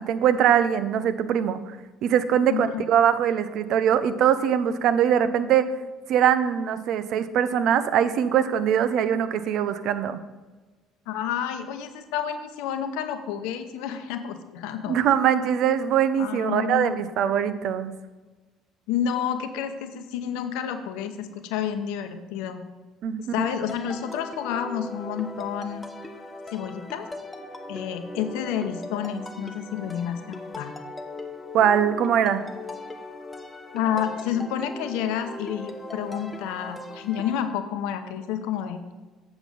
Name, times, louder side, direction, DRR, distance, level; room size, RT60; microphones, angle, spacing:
voice 1, 0.0-1.8 2.0-5.7 6.1-10.2 14.9-17.9 23.0-23.5 31.5-32.4, right 9 dB, 60° right, 12 dB, 0.6 m, -22 dB
voice 2, 2.5-2.8 11.1-15.1 16.2-17.0 18.9-22.6 23.2-25.8 26.5-27.1 27.7-30.7 33.7-38.8, left 9 dB, 70° left, 9 dB, 0.7 m, -30 dB
sound 1, 23.7-37.4, left 2 dB, 15° left, 1.0 m, -39 dB
8.0 x 6.0 x 5.3 m, 1.2 s
hypercardioid pair, 55°, 0 cm